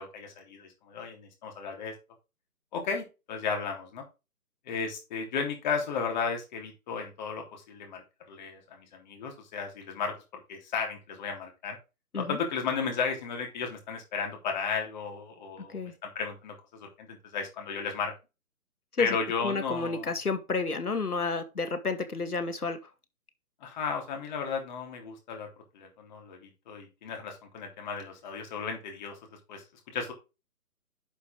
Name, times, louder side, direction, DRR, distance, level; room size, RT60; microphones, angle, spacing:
voice 1, 0.0-1.9 2.7-4.0 4.7-8.0 8.3-10.2 10.5-11.8 12.2-18.1 19.0-20.1 23.6-25.5 25.7-29.1 29.5-29.6 29.9-30.1, left 5 dB, 30° left, 2 dB, 3.3 m, -34 dB
voice 2, 19.0-22.8, left 3 dB, 80° left, 10 dB, 2.2 m, -31 dB
11.0 x 5.6 x 3.7 m, 0.28 s
figure-of-eight pair, 145°, 45 cm